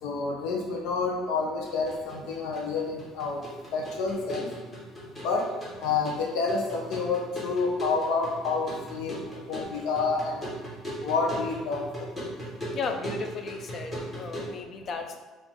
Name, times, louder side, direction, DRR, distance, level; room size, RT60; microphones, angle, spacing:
voice 1, 0.0-3.4 3.7-4.5 5.2-5.4 5.8-9.2 9.5-10.4 11.0-11.8, left 4 dB, 80° left, 0 dB, 0.7 m, -28 dB
sound 1, 1.7-14.5, equal, 20° left, 1.4 m, -39 dB
voice 2, 12.7-15.2, left 4 dB, 35° left, 5 dB, 0.5 m, -35 dB
5.3 x 2.5 x 3.6 m, 1.3 s
cardioid pair, 160°, 0 cm